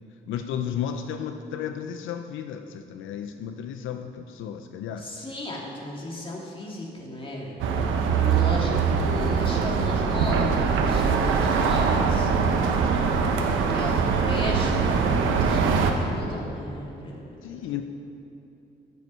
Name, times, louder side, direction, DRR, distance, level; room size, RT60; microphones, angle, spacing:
voice 1, 0.3-5.1 17.4-17.8, left 9 dB, 80° left, 7 dB, 0.5 m, -33 dB
voice 2, 5.0-13.1 13.4-17.6, left 1 dB, 25° left, -2 dB, 2.4 m, -35 dB
sound 1, 7.6-15.9, right 5 dB, 85° right, 1.0 m, -22 dB
9.2 x 8.3 x 5.5 m, 2.8 s
cardioid pair, 90°, 20 cm